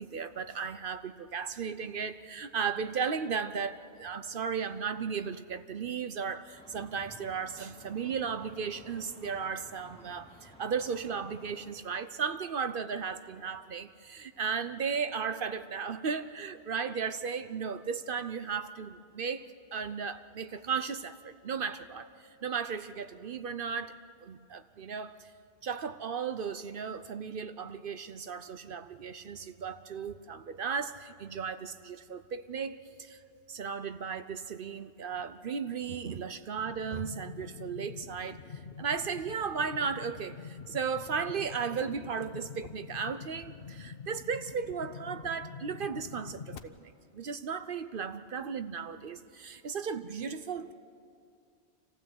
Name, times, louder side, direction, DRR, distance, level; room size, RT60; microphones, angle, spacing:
voice 1, 0.0-23.9 24.2-25.3 25.6-33.2 33.5-50.7, right 6 dB, 60° right, 11 dB, 0.9 m, -35 dB
sound 1, 6.5-11.7, equal, 5° left, 2.8 m, -55 dB
sound 2, 36.6-46.6, left 6 dB, 65° left, 1.1 m, -46 dB
27.0 x 15.5 x 7.9 m, 2.4 s
omnidirectional pair, 1.1 m